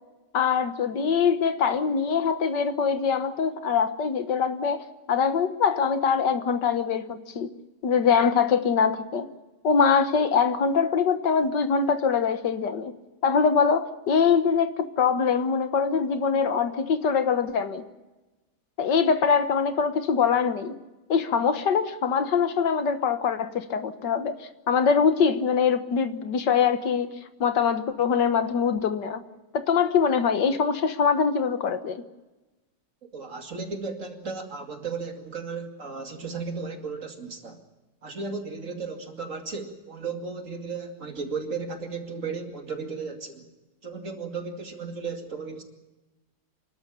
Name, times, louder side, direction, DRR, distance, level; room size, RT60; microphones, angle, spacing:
voice 1, 0.3-7.5 7.8-9.3 9.6-12.9 13.2-17.8 18.8-20.8 21.1-27.1 27.4-29.2 29.5-32.0, left 6 dB, 75° left, 10 dB, 1.9 m, -23 dB
voice 2, 33.0-37.6 38.0-43.5 43.8-45.6, right 4 dB, 45° right, 5 dB, 2.7 m, -35 dB
28.0 x 12.5 x 10.0 m, 1.1 s
omnidirectional pair, 1.9 m